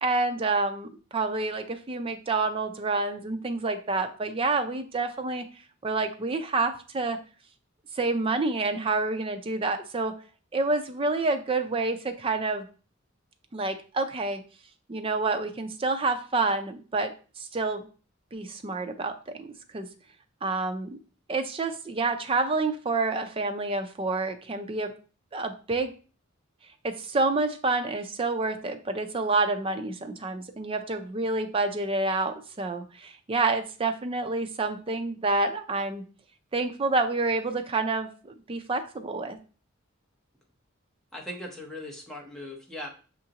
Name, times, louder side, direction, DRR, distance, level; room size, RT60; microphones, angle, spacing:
voice 1, 0.0-5.5 5.8-7.2 8.0-10.2 10.5-12.7 13.5-14.4 14.9-17.9 18.3-19.9 20.4-21.0 21.3-24.9 25.3-25.9 26.8-36.0 36.5-39.4, right 3 dB, 25° right, 7 dB, 0.4 m, -28 dB
voice 2, 41.1-42.9, left 1 dB, 5° left, -1 dB, 0.8 m, -39 dB
6.2 x 2.5 x 2.8 m, 0.37 s
head